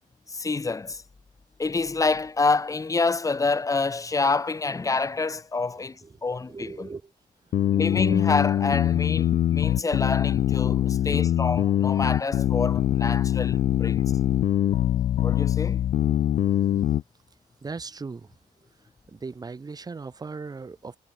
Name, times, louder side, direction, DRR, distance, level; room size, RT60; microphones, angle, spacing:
voice 1, 0.3-1.0 1.6-6.9 7.7-14.0 15.2-15.8, left 3 dB, 20° left, 2.1 m, -27 dB
voice 2, 6.5-7.1 10.8-11.1 17.6-18.3 19.1-21.0, right 4 dB, 25° right, 4.3 m, -38 dB
sound 1, 7.5-17.0, left 11 dB, 50° left, 0.4 m, -23 dB
wide cardioid pair, 170°, 16 cm